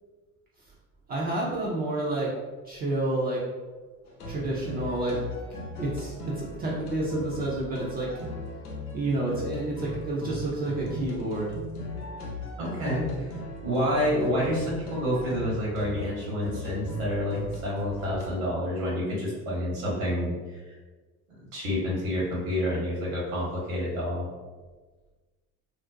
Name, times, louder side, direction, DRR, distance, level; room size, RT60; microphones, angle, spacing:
voice 1, 1.1-2.3 2.7-3.4 4.3-5.2 5.8-8.1 8.9-11.5, right 2 dB, 25° right, -5 dB, 0.4 m, -29 dB
sound 1, 4.1-18.3, left 1 dB, 80° left, 0.6 m, -38 dB
voice 2, 12.6-13.3 13.6-20.3 21.3-24.3, equal, 65° right, -6 dB, 1.0 m, -28 dB
2.5 x 2.1 x 2.5 m, 1.3 s
figure-of-eight pair, 60°, 45 cm